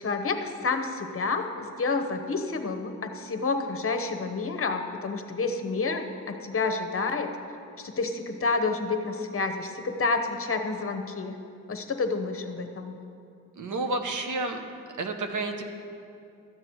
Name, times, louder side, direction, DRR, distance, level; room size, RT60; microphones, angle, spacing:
voice 1, 0.0-7.3 7.8-11.3 11.7-12.9, left 4 dB, 40° left, 5 dB, 1.0 m, -29 dB
voice 2, 13.6-14.6 15.0-15.6, right 2 dB, 65° right, 5 dB, 1.0 m, -30 dB
13.5 x 8.0 x 4.6 m, 2.6 s
wide cardioid pair, 120°, 33 cm